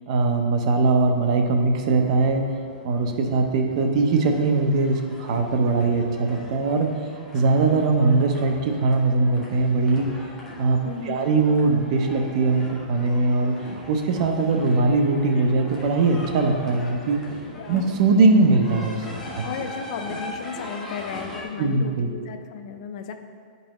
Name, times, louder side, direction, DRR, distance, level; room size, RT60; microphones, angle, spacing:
voice 1, 0.1-2.4 2.8-6.9 7.3-10.1 10.6-10.8 11.1-13.5 13.9-17.2 17.7-19.0 19.4-19.5 21.6-22.1, right 3 dB, 45° right, 4 dB, 0.8 m, -21 dB
sound 1, 1.9-21.4, left 1 dB, 10° left, 1.1 m, -41 dB
voice 2, 10.8-11.3 17.6-17.9 19.4-23.1, left 7 dB, 50° left, 7 dB, 0.6 m, -34 dB
9.5 x 5.4 x 3.1 m, 2.2 s
hypercardioid pair, 160°, 5 cm